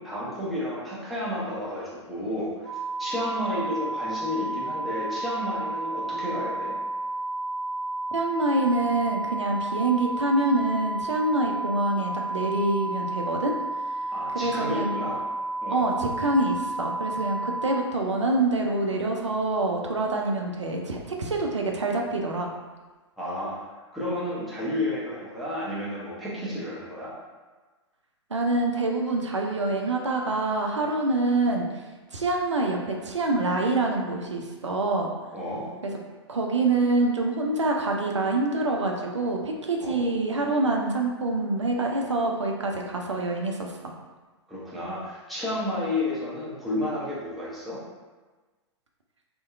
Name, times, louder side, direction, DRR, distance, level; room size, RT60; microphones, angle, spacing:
voice 1, 0.0-2.7 3.0-6.7 14.1-15.2 15.6-15.9 23.2-23.6 23.9-27.1 35.3-35.7 39.8-40.0 44.5-47.8, left 1 dB, ahead, -9 dB, 0.6 m, -31 dB
sound 1, 2.6-17.8, right 2 dB, 35° left, 0.8 m, -31 dB
voice 2, 8.1-13.6 14.3-14.9 15.7-22.5 28.3-31.7 32.1-35.1 36.3-43.9, right 2 dB, 80° right, 1 dB, 0.4 m, -26 dB
2.6 x 2.1 x 2.4 m, 1.3 s
figure-of-eight pair, 105°, 15 cm